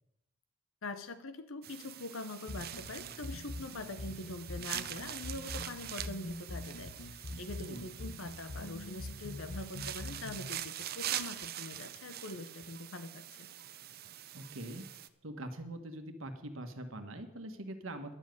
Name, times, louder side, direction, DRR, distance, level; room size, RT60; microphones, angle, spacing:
voice 1, 0.8-13.5, left 2 dB, 70° left, 11 dB, 0.8 m, -44 dB
sound 1, 1.6-15.1, right 11 dB, 50° right, 0.6 m, -44 dB
sound 2, 2.5-10.5, left 2 dB, 85° left, 1.1 m, -44 dB
voice 2, 14.3-14.9 15.2-18.1, right 1 dB, 70° right, 7 dB, 1.4 m, -43 dB
10.5 x 7.3 x 9.3 m, 0.88 s
head